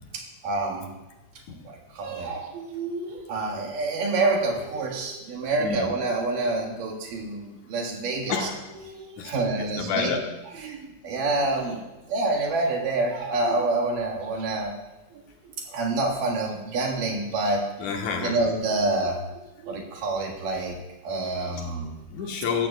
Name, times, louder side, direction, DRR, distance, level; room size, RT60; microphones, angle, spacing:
voice 1, 0.1-0.9 1.6-8.5 8.9-10.1 10.5-14.7 15.1-17.7 18.2-20.8 21.0-22.0, right 2 dB, 90° right, 0 dB, 3.3 m, -27 dB
voice 2, 5.6-5.9 8.3-8.6 9.2-9.3 9.6-10.2 17.8-18.4 22.1-22.7, left 6 dB, 70° left, 2 dB, 2.4 m, -28 dB
15.5 x 14.0 x 2.3 m, 1.1 s
omnidirectional pair, 3.7 m